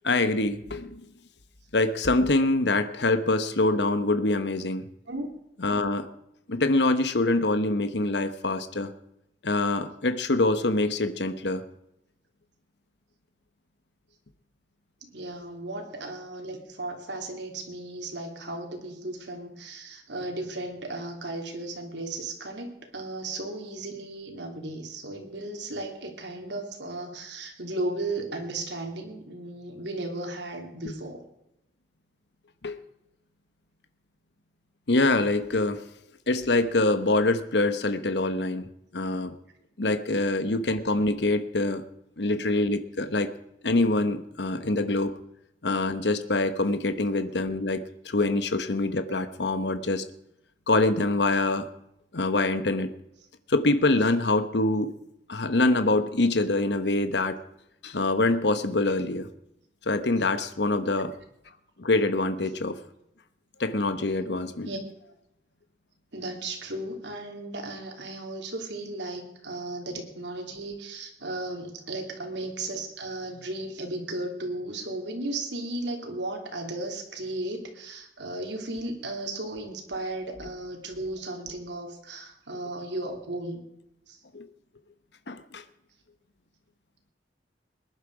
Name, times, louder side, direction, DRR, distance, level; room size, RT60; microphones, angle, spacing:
voice 1, 0.0-1.0 1.7-4.9 5.6-6.1 6.5-8.9 9.4-11.6 32.6-32.8 34.9-35.9 36.3-38.7 38.9-39.3 39.8-41.8 42.2-43.3 43.6-45.2 45.6-50.0 50.7-51.7 52.1-52.9 53.5-55.0 55.3-57.4 57.8-59.3 59.8-61.1 61.8-62.8 63.6-64.7 84.3-84.5 85.3-85.6, left 2 dB, 75° left, 10 dB, 1.1 m, -25 dB
voice 2, 15.0-31.2 64.6-64.8 66.1-83.6 84.1-84.2, right 2 dB, 85° right, 3 dB, 3.1 m, -35 dB
20.5 x 11.0 x 4.9 m, 0.81 s
head